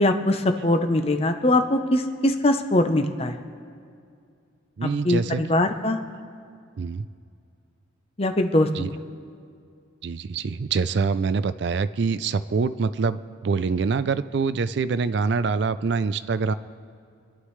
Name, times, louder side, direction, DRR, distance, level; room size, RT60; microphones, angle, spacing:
voice 1, 0.0-3.3 4.8-6.0 8.2-8.9, left 1 dB, 30° left, 7 dB, 0.7 m, -22 dB
voice 2, 4.8-5.4 6.8-7.1 8.7-8.9 10.0-16.5, right 4 dB, 60° right, 13 dB, 0.4 m, -25 dB
26.5 x 11.5 x 3.2 m, 2.4 s
head